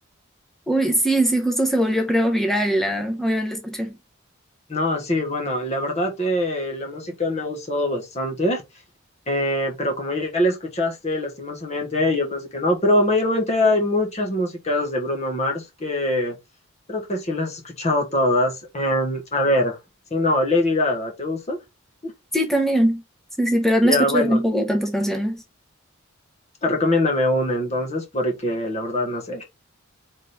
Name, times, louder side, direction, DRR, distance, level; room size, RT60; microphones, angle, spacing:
voice 1, 0.7-4.0 22.3-23.0 23.4-25.4, right 1 dB, ahead, 0.9 m, -21 dB
voice 2, 4.7-8.6 9.3-16.4 16.9-19.8 20.1-21.6 22.0-22.1 23.8-24.4 26.6-29.4, left 1 dB, 30° left, 1.0 m, -23 dB
4.0 x 3.7 x 3.2 m
head